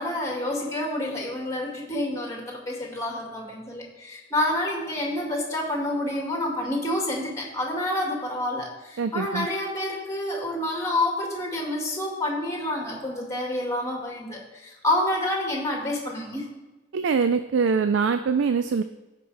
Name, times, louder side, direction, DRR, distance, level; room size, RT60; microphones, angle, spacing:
voice 1, 0.0-16.5, left 1 dB, 15° left, -1 dB, 2.0 m, -28 dB
voice 2, 9.0-9.5 16.9-18.8, right 5 dB, 80° right, 10 dB, 0.4 m, -23 dB
15.0 x 5.2 x 3.3 m, 1.1 s
head